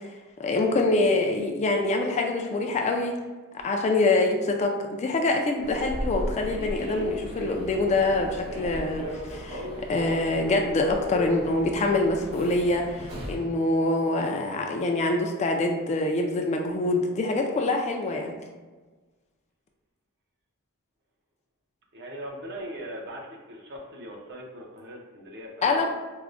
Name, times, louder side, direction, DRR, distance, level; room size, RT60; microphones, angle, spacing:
voice 1, 0.4-3.2 3.6-18.3 25.6-25.9, left 2 dB, 30° left, 2 dB, 0.3 m, -25 dB
Human voice / Subway metro underground, 5.6-13.5, equal, 75° right, 1.0 m, -35 dB
voice 2, 21.9-25.9, equal, 55° right, 0 dB, 0.6 m, -40 dB
4.6 x 2.1 x 2.4 m, 1.3 s
head